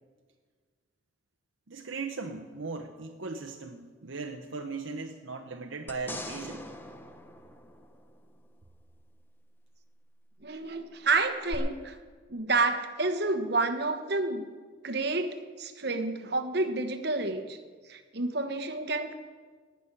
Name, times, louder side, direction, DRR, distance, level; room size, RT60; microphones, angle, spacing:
voice 1, 1.7-6.6, right 4 dB, 75° right, 3 dB, 0.9 m, -38 dB
sound 1, 5.9-8.4 11.5-11.6, left 1 dB, 10° left, 0.8 m, -42 dB
voice 2, 10.4-12.0 12.3-14.4 14.8-17.6 17.9-19.1, right 3 dB, 55° right, 7 dB, 1.3 m, -29 dB
17.5 x 6.2 x 9.7 m, 1.5 s
head